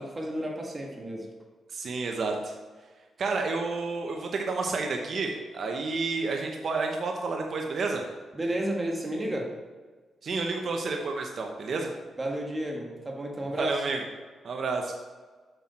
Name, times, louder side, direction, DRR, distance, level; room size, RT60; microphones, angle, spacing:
voice 1, 0.0-1.3 8.3-9.5 12.2-13.9, right 1 dB, 25° right, 1 dB, 1.7 m, -32 dB
voice 2, 1.7-2.5 3.2-8.0 10.2-11.9 13.6-14.0 14.4-14.9, right 3 dB, 60° right, 2 dB, 0.9 m, -30 dB
7.8 x 6.1 x 4.3 m, 1.4 s
cardioid pair, 85°, 0 cm